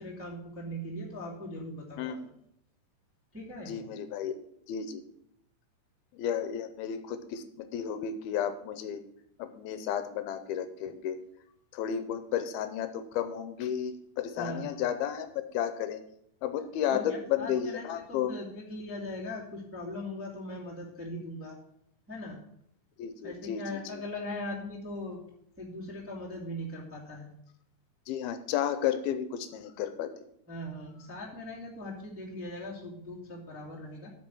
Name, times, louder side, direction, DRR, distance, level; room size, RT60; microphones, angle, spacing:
voice 1, 0.0-2.2 3.3-3.8 14.3-14.8 16.9-21.6 22.1-22.4 23.2-25.2 25.6-27.3 30.5-34.1, left 1 dB, 5° right, -4 dB, 1.2 m, -40 dB
voice 2, 2.0-2.3 3.7-4.4 4.7-5.0 6.1-9.0 9.4-11.2 11.7-15.3 15.5-16.0 16.4-18.3 23.0-23.6 28.1-30.1, left 9 dB, 85° left, 10 dB, 2.5 m, -32 dB
8.9 x 6.2 x 7.7 m, 0.73 s
omnidirectional pair, 4.6 m